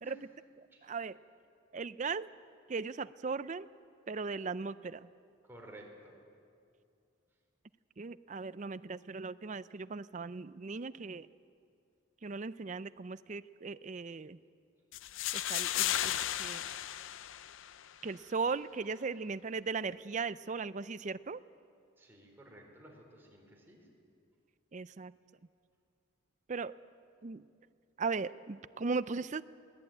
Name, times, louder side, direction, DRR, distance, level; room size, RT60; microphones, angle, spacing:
voice 1, 0.6-1.2 1.7-2.3 2.7-3.7 4.1-5.1 8.0-11.3 12.2-14.4 15.3-16.6 18.0-21.4 24.7-25.1 26.5-26.7 27.2-27.5 28.0-29.4, right 4 dB, 35° right, 15 dB, 0.5 m, -38 dB
voice 2, 5.4-6.1 22.0-23.8, right 1 dB, 10° right, -1 dB, 4.0 m, -54 dB
sound 1, 14.9-17.9, left 12 dB, 70° left, 0.5 m, -35 dB
22.0 x 18.5 x 9.0 m, 2.4 s
head